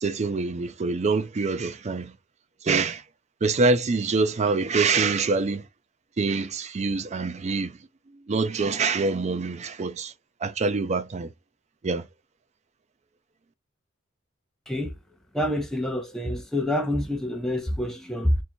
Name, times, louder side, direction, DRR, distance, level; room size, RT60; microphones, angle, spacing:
voice 1, 0.0-2.2 2.6-3.0 3.4-5.6 6.2-7.8 8.3-10.1 10.4-11.3 11.8-12.1, right 4 dB, 35° right, 0.4 m, -25 dB
voice 2, 14.7-15.0 15.3-18.4, left 1 dB, ahead, 0.7 m, -27 dB
3.3 x 2.7 x 4.3 m
head